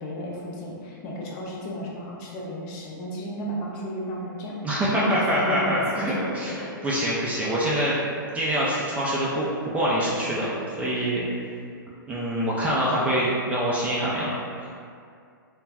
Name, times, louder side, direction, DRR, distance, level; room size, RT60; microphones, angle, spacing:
voice 1, 0.0-4.6 4.9-6.7, equal, 35° left, -4 dB, 0.5 m, -33 dB
voice 2, 4.6-8.0 8.3-10.5 10.8-11.2 12.1-14.3 14.6-14.8, equal, 10° right, -7 dB, 0.4 m, -25 dB
2.3 x 2.1 x 3.3 m, 2.3 s
hypercardioid pair, 120°, 12 cm